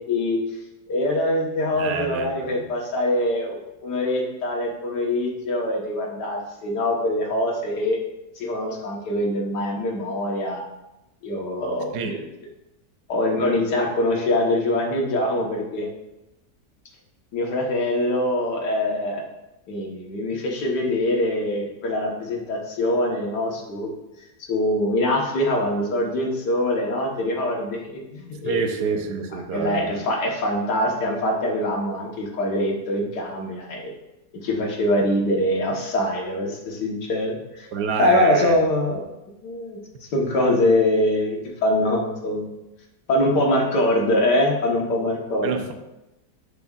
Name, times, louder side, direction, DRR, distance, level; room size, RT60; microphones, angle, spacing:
voice 1, 0.1-0.4 0.9-8.0 8.4-10.6 11.2-12.2 13.1-15.9 17.3-19.2 19.7-23.9 24.5-28.7 29.5-33.9 34.4-37.7 38.0-39.0 39.4-39.8 40.1-42.5 43.1-45.6, left 1 dB, 90° left, 0 dB, 1.9 m, -23 dB
voice 2, 1.8-2.7 11.9-12.1 28.4-29.9 37.7-38.6 45.4-45.7, right 5 dB, 80° right, 6 dB, 1.3 m, -27 dB
10.5 x 5.2 x 2.4 m, 0.94 s
omnidirectional pair, 1.8 m